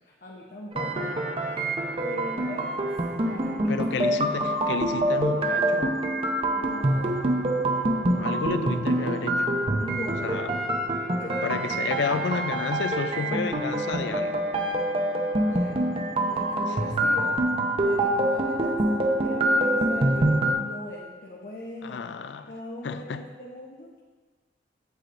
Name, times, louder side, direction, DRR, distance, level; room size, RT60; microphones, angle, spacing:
voice 1, 0.0-3.8 6.6-7.3 9.8-10.6 11.2-11.6 12.1-12.2 12.5-12.7 13.2-13.4 14.7-14.8 15.4-15.8 16.2-17.4 17.8-22.0 22.5-24.0, left 1 dB, 55° left, 0.9 m, -39 dB
sound 1, 0.7-20.5, right 1 dB, 35° right, 0.7 m, -25 dB
voice 2, 3.7-6.0 8.2-9.5 10.2-10.5 11.4-14.4 21.8-22.5 22.8-23.2, left 5 dB, 90° left, 0.4 m, -31 dB
8.2 x 7.3 x 2.6 m
head